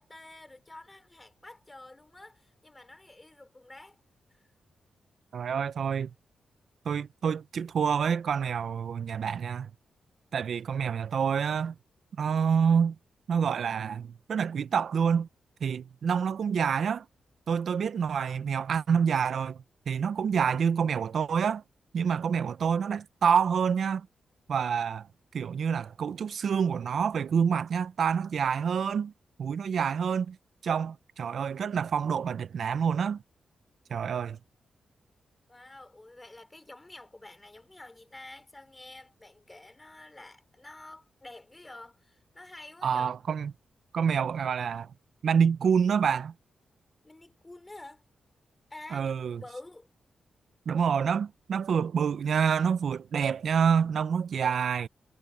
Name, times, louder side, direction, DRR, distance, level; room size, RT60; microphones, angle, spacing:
voice 1, 0.0-4.0 4.3-4.4 35.5-43.1 47.0-48.0 48.7-49.9, left 2 dB, 20° left, 3.1 m, -49 dB
voice 2, 5.3-6.1 6.9-9.7 10.3-11.7 12.2-12.9 13.3-15.3 15.6-17.1 17.5-19.6 19.9-21.6 21.9-24.1 24.5-25.1 25.3-29.1 29.4-30.4 30.6-33.2 33.9-34.4 42.8-43.5 43.9-44.9 45.2-46.3 48.9-49.4 50.7-54.9, right 7 dB, 70° right, 0.6 m, -27 dB
cardioid pair, 90°, 0 cm